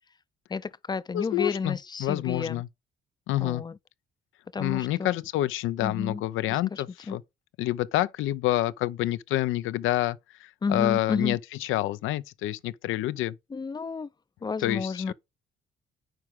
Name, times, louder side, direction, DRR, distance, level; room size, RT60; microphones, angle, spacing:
voice 1, 0.5-2.6 3.4-3.8 4.5-5.1 5.8-6.2 6.5-7.2 10.6-11.4 13.5-14.1 14.4-15.1, left 5 dB, 20° left, 0.4 m, -31 dB
voice 2, 1.1-2.7 3.3-3.6 4.6-7.2 7.6-13.4 14.6-15.1, left 15 dB, 85° left, 0.5 m, -28 dB
9.2 x 4.8 x 3.6 m
cardioid pair, 90°, 20 cm